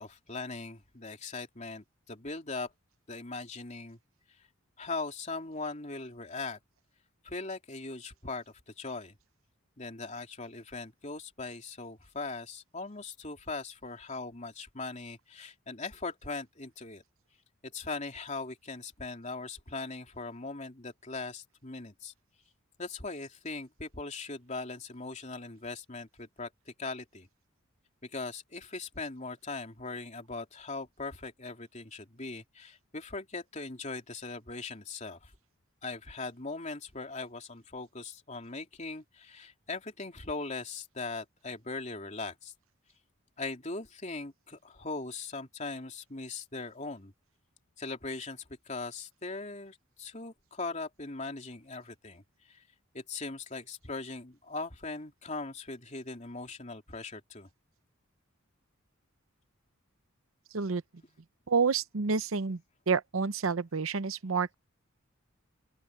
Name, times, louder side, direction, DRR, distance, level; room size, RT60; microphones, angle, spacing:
voice 1, 0.0-2.7 3.1-4.0 4.8-6.6 7.2-8.4 8.8-9.1 9.8-17.0 17.6-22.1 22.8-27.3 28.0-35.3 35.8-42.5 43.4-47.1 47.8-52.2 52.5-52.6 52.9-57.5, left 3 dB, 35° left, 3.2 m, -40 dB
voice 2, 61.5-62.6 62.9-64.5, right 5 dB, 80° right, 0.8 m, -29 dB
open air
head